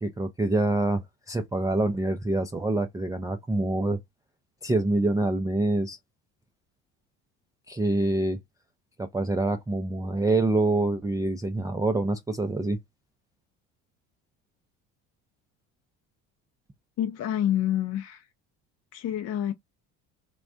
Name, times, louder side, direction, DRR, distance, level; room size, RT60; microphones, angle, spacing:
voice 1, 0.0-4.0 4.6-6.0 7.7-8.4 9.0-12.8, right 2 dB, 10° right, 0.4 m, -26 dB
voice 2, 17.0-18.3 18.9-19.5, left 11 dB, 45° left, 0.5 m, -27 dB
3.2 x 2.3 x 2.5 m
supercardioid pair, 75°, 38 cm